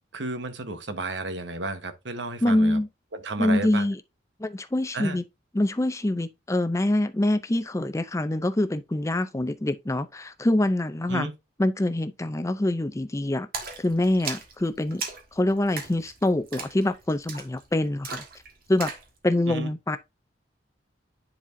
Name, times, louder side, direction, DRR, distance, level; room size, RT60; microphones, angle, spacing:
voice 1, 0.1-2.8 3.1-3.9 4.9-5.2 11.1-11.3 19.5-19.7, right 3 dB, 80° right, 1.2 m, -32 dB
voice 2, 2.4-2.9 3.4-4.0 4.4-5.2 5.5-11.3 11.6-13.5 13.8-15.0 15.3-18.2 18.7-18.9 19.2-20.0, left 1 dB, 15° left, 0.5 m, -25 dB
Splash splatter, 13.5-19.1, right 5 dB, 55° right, 1.8 m, -38 dB
10.0 x 4.2 x 2.7 m
head